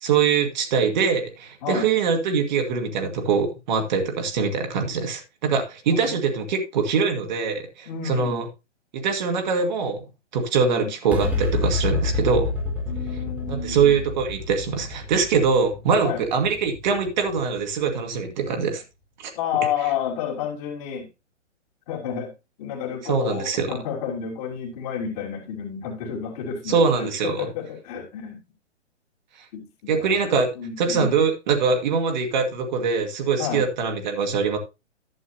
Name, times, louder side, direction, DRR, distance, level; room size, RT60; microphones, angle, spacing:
voice 1, 0.0-8.5 8.9-10.0 10.3-12.5 13.5-18.8 19.2-19.3 23.1-23.7 26.7-27.5 29.9-30.5 30.8-34.6, right 5 dB, 40° right, 1.9 m, -23 dB
voice 2, 7.8-8.4 10.6-10.9 12.9-13.9 16.0-16.2 19.3-21.1 21.9-22.3 22.6-28.4 29.5-30.2 30.5-31.1 33.4-33.6, left 8 dB, 30° left, 2.9 m, -30 dB
sound 1, 11.1-17.8, left 3 dB, 5° right, 1.1 m, -29 dB
11.5 x 8.3 x 2.7 m
figure-of-eight pair, 125°, 36 cm